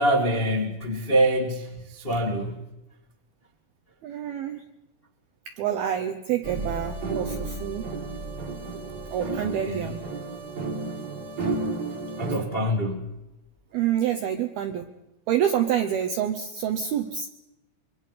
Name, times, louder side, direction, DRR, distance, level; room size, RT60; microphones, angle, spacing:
voice 1, 0.0-2.6 9.4-9.9 12.2-13.2, right 1 dB, 60° left, 0.5 m, -25 dB
voice 2, 4.0-4.6 5.5-7.9 9.1-10.0 13.7-14.9 15.3-17.3, right 10 dB, 80° right, 2.2 m, -27 dB
sound 1, 6.4-12.4, right 3 dB, 35° right, 1.5 m, -32 dB
27.0 x 24.0 x 5.6 m
omnidirectional pair, 5.9 m